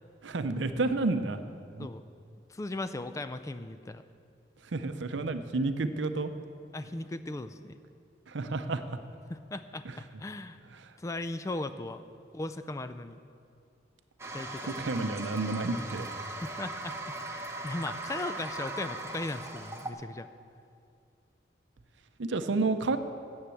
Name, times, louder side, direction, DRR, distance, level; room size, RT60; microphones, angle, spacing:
voice 1, 0.2-1.4 1.8-1.9 4.7-6.3 8.3-8.8 14.8-16.1 22.2-23.0, right 3 dB, 80° right, 10 dB, 0.6 m, -30 dB
voice 2, 2.5-4.0 6.7-7.8 9.3-10.6 11.0-12.0 12.3-13.2 14.3-14.7 16.4-20.3, left 2 dB, 15° left, 11 dB, 0.3 m, -37 dB
Toilet flush, 14.2-19.9, right 2 dB, 15° right, 0.7 m, -39 dB
9.9 x 7.3 x 7.8 m, 2.4 s
head